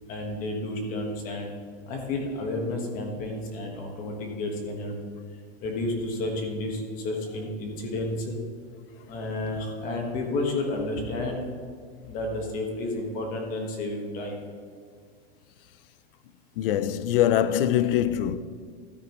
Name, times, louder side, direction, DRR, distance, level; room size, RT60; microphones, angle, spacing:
voice 1, 0.1-1.5 1.9-5.0 5.6-8.4 9.1-11.4 12.0-14.4, left 2 dB, 25° left, 1.3 m, -31 dB
voice 2, 16.6-18.4, left 11 dB, 60° left, 0.5 m, -23 dB
13.0 x 9.3 x 3.0 m
supercardioid pair, 180°, 32 cm